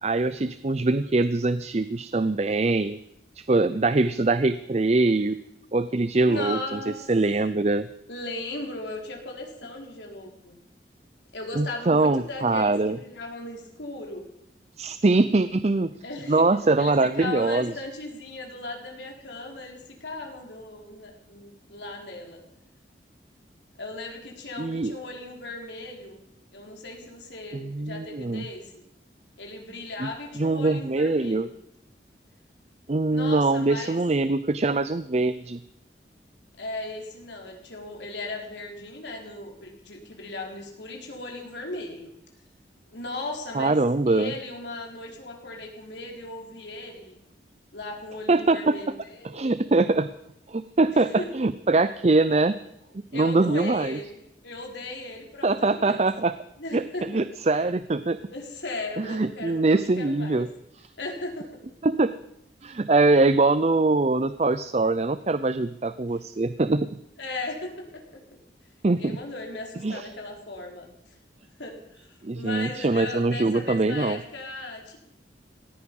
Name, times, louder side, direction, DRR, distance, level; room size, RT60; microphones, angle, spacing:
voice 1, 0.0-3.0 3.4-5.4 5.7-6.8 7.1-7.9 11.6-13.0 14.8-15.9 16.3-17.7 24.6-25.0 27.6-28.4 30.0-30.1 30.4-31.5 32.9-35.6 43.5-44.3 48.3-48.7 49.2-50.1 50.5-52.6 53.1-54.0 55.4-56.3 56.7-56.8 57.1-58.2 59.0-60.5 61.8-62.1 62.6-66.9 68.8-69.2 69.8-70.1 72.2-74.2, right 3 dB, 35° right, 13 dB, 0.5 m, -23 dB
voice 2, 6.3-7.0 8.1-10.5 11.3-14.2 16.0-16.4 16.8-22.4 23.8-26.2 26.5-28.9 29.4-31.5 33.1-34.0 36.6-42.1 42.9-47.2 47.7-49.4 50.9-51.3 53.1-56.1 56.6-57.1 58.3-60.5 61.0-61.6 67.2-68.0 68.9-70.9 71.6-75.0, left 2 dB, 90° left, 1 dB, 4.2 m, -37 dB
18.5 x 14.5 x 5.5 m, 0.80 s
head